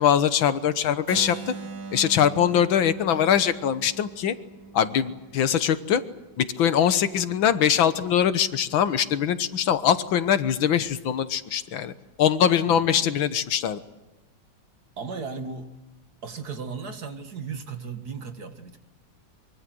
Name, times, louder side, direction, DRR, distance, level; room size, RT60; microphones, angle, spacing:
voice 1, 0.0-1.5 1.9-4.3 4.7-6.0 6.4-11.9 12.2-13.8, left 9 dB, 85° left, 12 dB, 1.9 m, -22 dB
Keyboard (musical), 1.1-6.9, right 4 dB, 85° right, 3.2 m, -42 dB
voice 2, 12.7-13.0 15.0-15.7 16.2-18.8, right 5 dB, 55° right, 7 dB, 2.2 m, -36 dB
24.0 x 24.0 x 7.8 m, 1.1 s
omnidirectional pair, 2.1 m